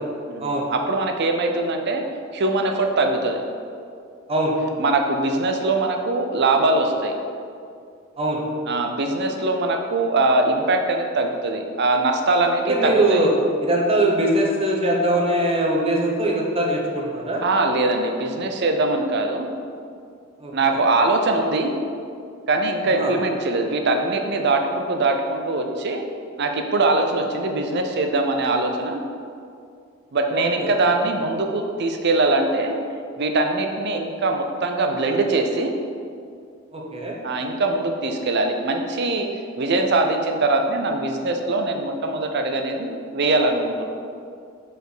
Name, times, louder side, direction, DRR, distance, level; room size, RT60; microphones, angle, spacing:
voice 1, 0.3-2.0 2.3-3.4 4.8-7.1 8.7-13.2 17.4-19.5 20.5-21.7 22.5-26.0 26.4-29.0 30.1-32.8 33.2-35.7 37.2-39.3 39.6-43.9, right 2 dB, 55° right, 4 dB, 0.6 m, -22 dB
voice 2, 12.7-13.3 13.6-17.4 20.4-20.8 23.0-23.2 30.3-30.7 36.7-37.2, right 1 dB, 30° right, -2 dB, 0.9 m, -22 dB
5.1 x 4.2 x 5.0 m, 2.3 s
head